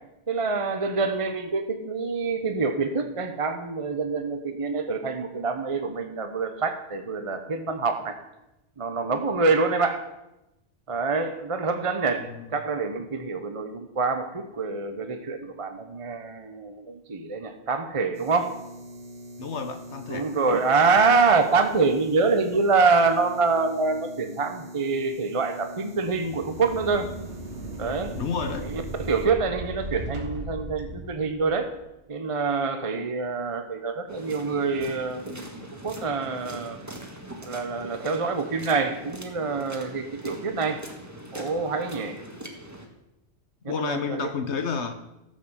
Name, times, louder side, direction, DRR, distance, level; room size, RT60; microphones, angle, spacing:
voice 1, 0.3-8.2 8.8-10.0 10.9-18.6 20.1-27.1 27.8-28.1 28.6-31.7 32.1-36.8 37.4-40.8 41.3-42.2 43.6-44.3, right 4 dB, 30° right, 7 dB, 0.9 m, -26 dB
sound 1, 18.1-29.3, equal, 50° right, 1.6 m, -43 dB
voice 2, 19.4-20.3 28.2-28.7 43.6-44.9, left 5 dB, 75° left, 8 dB, 1.2 m, -30 dB
thin metal sliding door close, 26.1-31.7, right 1 dB, 80° right, 2.1 m, -37 dB
sound 2, 34.1-42.9, right 1 dB, 15° right, 1.7 m, -42 dB
13.5 x 7.8 x 7.3 m, 0.94 s
omnidirectional pair, 1.2 m